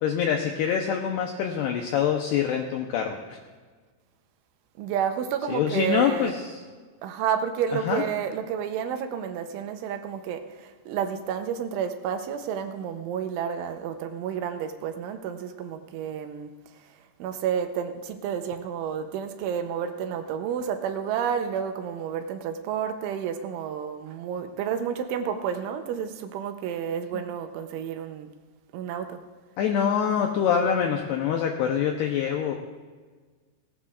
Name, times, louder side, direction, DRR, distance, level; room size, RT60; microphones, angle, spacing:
voice 1, 0.0-3.4 5.5-6.6 7.7-8.0 27.1-27.2 29.6-32.6, left 8 dB, 85° left, 2 dB, 2.3 m, -25 dB
voice 2, 4.8-6.3 7.0-16.5 17.2-28.3 28.7-29.2, right 8 dB, 80° right, 7 dB, 3.1 m, -30 dB
18.0 x 17.5 x 2.5 m, 1.4 s
omnidirectional pair, 5.8 m